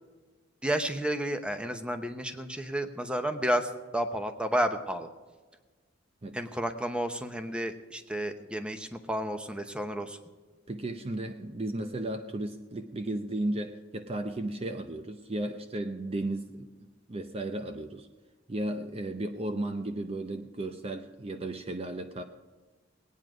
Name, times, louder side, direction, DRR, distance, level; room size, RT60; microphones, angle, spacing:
voice 1, 0.6-5.1 6.3-10.2, right 1 dB, 5° right, 7 dB, 0.8 m, -31 dB
voice 2, 10.7-18.1 18.5-22.2, right 1 dB, 30° right, 7 dB, 0.6 m, -34 dB
19.5 x 9.3 x 5.0 m, 1.3 s
head